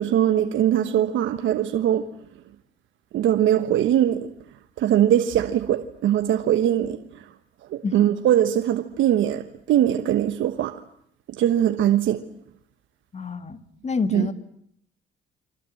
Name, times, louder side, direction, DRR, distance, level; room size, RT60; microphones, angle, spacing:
voice 1, 0.0-2.1 3.1-4.3 4.8-7.3 7.7-10.8 11.3-12.3 14.1-14.3, right 11 dB, 80° right, 1.2 m, -21 dB
voice 2, 13.1-14.3, left 4 dB, 35° left, 2.1 m, -28 dB
29.0 x 24.5 x 7.8 m
cardioid pair, 90°, 20 cm